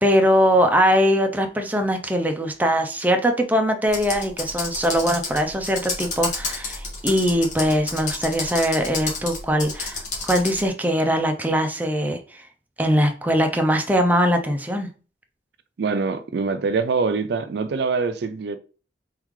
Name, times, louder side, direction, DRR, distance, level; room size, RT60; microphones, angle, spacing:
voice 1, 0.0-12.2 12.8-14.9, equal, 10° right, 0.5 m, -21 dB
Computer keyboard, 3.9-10.7, left 3 dB, 45° left, 1.4 m, -30 dB
voice 2, 15.8-18.6, right 4 dB, 70° right, 0.4 m, -24 dB
3.6 x 3.1 x 3.6 m
head